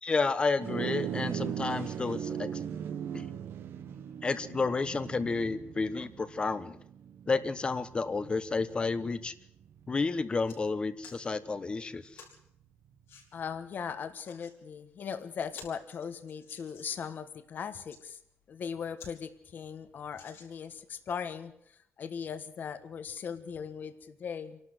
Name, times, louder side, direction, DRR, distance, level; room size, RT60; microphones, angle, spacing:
voice 1, 0.0-2.6 3.1-3.3 4.2-6.8 7.3-9.3 9.9-12.2, left 4 dB, 25° left, 14 dB, 1.1 m, -31 dB
sound 1, 0.6-10.2, right 9 dB, 65° right, 1.3 m, -39 dB
sound 2, 9.8-9.9 10.2-10.6 11.0-11.2 12.1-12.4 13.1-13.3 14.0-14.5 15.0-15.1 15.4-17.1 17.7-18.0 18.6-18.7 19.0-19.1 19.5-19.6 20.1-20.8 21.5-21.6, left 6 dB, 85° left, 5.4 m, -52 dB
voice 2, 13.3-18.2 18.5-24.6, left 7 dB, 45° left, 10 dB, 1.5 m, -39 dB
27.5 x 12.5 x 7.9 m, 0.72 s
cardioid pair, 150°, 4 cm